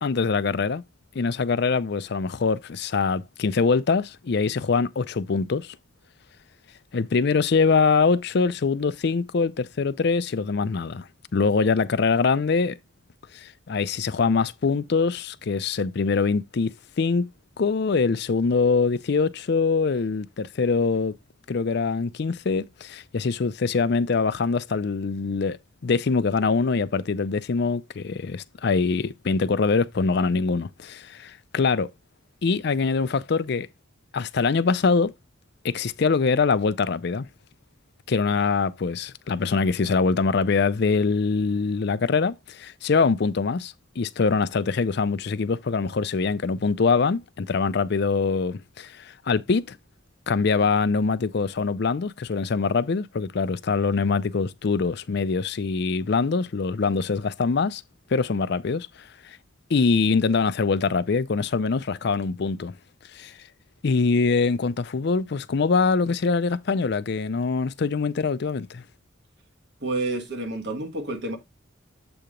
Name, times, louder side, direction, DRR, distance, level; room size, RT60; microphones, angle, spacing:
voice 1, 0.0-0.8 1.1-5.8 6.9-11.1 11.3-12.8 13.3-17.3 17.6-21.2 21.5-25.6 25.8-31.9 32.4-33.7 34.1-35.1 35.6-37.3 38.1-49.8 50.3-57.8 58.1-59.4 59.7-62.7 63.1-63.3 63.8-68.8, left 4 dB, 55° left, 0.5 m, -23 dB
voice 2, 69.8-71.4, right 2 dB, 60° right, 1.5 m, -29 dB
7.9 x 2.9 x 5.0 m
head